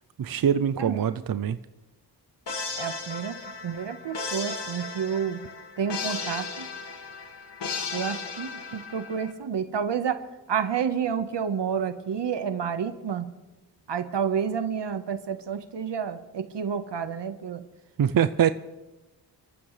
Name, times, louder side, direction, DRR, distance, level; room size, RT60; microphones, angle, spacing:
voice 1, 0.2-1.6 18.0-18.5, right 8 dB, 55° right, 13 dB, 0.6 m, -23 dB
voice 2, 0.8-1.2 2.8-3.4 3.6-5.4 5.8-6.7 7.9-10.2 10.5-13.2 13.9-17.6, right 7 dB, 85° right, 9 dB, 1.4 m, -30 dB
sound 1, 2.5-9.3, left 4 dB, 75° left, 2.0 m, -35 dB
30.0 x 14.0 x 3.3 m, 1.1 s
wide cardioid pair, 95°, 42 cm